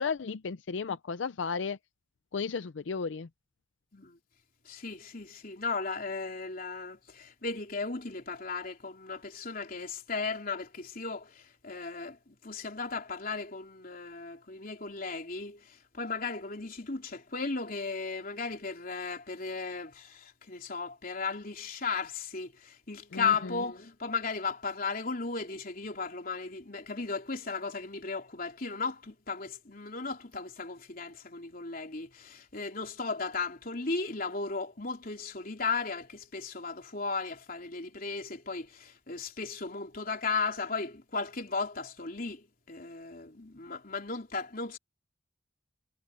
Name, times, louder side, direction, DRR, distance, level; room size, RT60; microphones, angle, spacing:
voice 1, 0.0-1.8 2.3-3.3 23.1-23.6, left 5 dB, 85° left, 0.5 m, -34 dB
voice 2, 4.7-44.8, left 4 dB, 50° left, 3.6 m, -36 dB
head